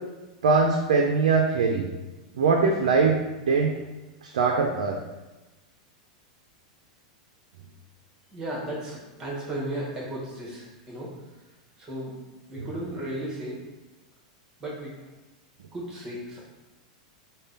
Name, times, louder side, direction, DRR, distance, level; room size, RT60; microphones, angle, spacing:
voice 1, 0.4-1.9 2.3-3.2 3.5-3.7 4.2-5.0 12.6-12.7, right 4 dB, 85° right, 2 dB, 0.4 m, -22 dB
voice 2, 8.3-11.1 11.8-12.1 12.5-13.6 14.6-14.9 15.7-16.4, right 1 dB, 20° right, -5 dB, 1.3 m, -35 dB
3.4 x 2.2 x 3.8 m, 1.1 s
hypercardioid pair, 120°, 4 cm